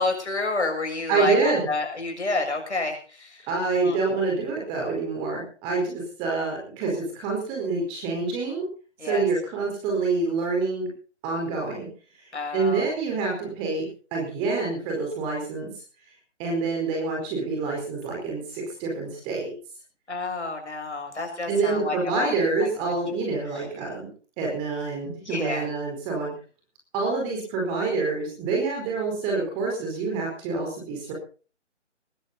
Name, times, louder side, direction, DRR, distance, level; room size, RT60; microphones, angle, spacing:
voice 1, 0.0-3.5 3.8-4.0 9.0-9.2 12.3-12.9 20.1-22.3 22.6-22.9 25.2-25.7, left 3 dB, 70° left, 3 dB, 7.0 m, -29 dB
voice 2, 1.1-1.7 3.5-8.7 9.0-10.9 11.2-11.9 12.5-15.7 16.4-19.5 21.5-24.1 24.4-26.3 26.9-31.1, right 3 dB, 15° right, 0 dB, 4.6 m, -27 dB
19.5 x 14.5 x 4.1 m, 0.38 s
figure-of-eight pair, 155°, 36 cm